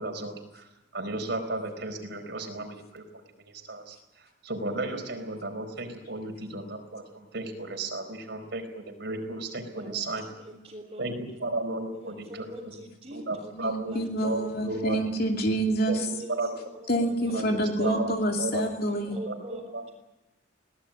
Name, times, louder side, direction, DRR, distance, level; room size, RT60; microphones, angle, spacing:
voice 1, 0.0-3.0 3.4-10.2 11.0-12.7 13.1-15.1 15.9-16.0 16.3-16.5 17.3-18.6 19.3-19.8, right 2 dB, 60° right, 3 dB, 4.5 m, -34 dB
voice 2, 9.7-10.1 10.4-11.2 11.9-14.0 14.3-14.9 15.2-15.3 16.1-17.4 17.8-19.8, right 1 dB, 25° right, -4 dB, 3.6 m, -44 dB
voice 3, 13.5-16.0 16.9-19.2, right 1 dB, 50° left, 2 dB, 2.7 m, -27 dB
22.5 x 18.5 x 9.0 m, 1.0 s
head